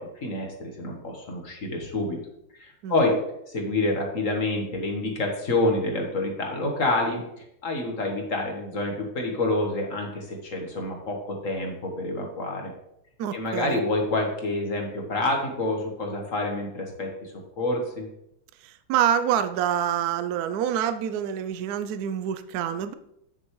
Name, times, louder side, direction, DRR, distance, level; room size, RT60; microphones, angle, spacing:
voice 1, 0.0-2.2 2.5-3.2 3.5-7.2 7.6-12.7 13.3-18.1, left 2 dB, 45° left, 1 dB, 1.5 m, -28 dB
voice 2, 2.8-3.2 13.2-13.8 18.6-22.9, right 9 dB, 85° right, 11 dB, 0.8 m, -27 dB
8.8 x 6.9 x 3.2 m, 0.79 s
omnidirectional pair, 2.3 m